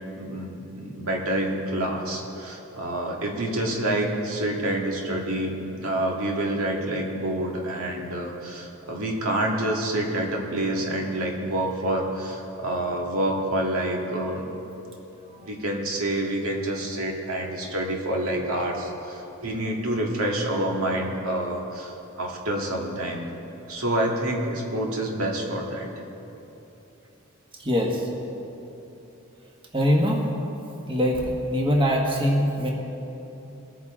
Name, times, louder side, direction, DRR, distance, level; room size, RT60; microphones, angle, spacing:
voice 1, 0.2-14.5 15.4-23.3 23.7-25.9, right 1 dB, 80° right, -1 dB, 2.0 m, -27 dB
voice 2, 27.6-28.0 29.7-30.2 30.9-31.2 31.5-32.7, equal, 25° right, -1 dB, 1.5 m, -22 dB
22.5 x 9.4 x 3.7 m, 3.0 s
head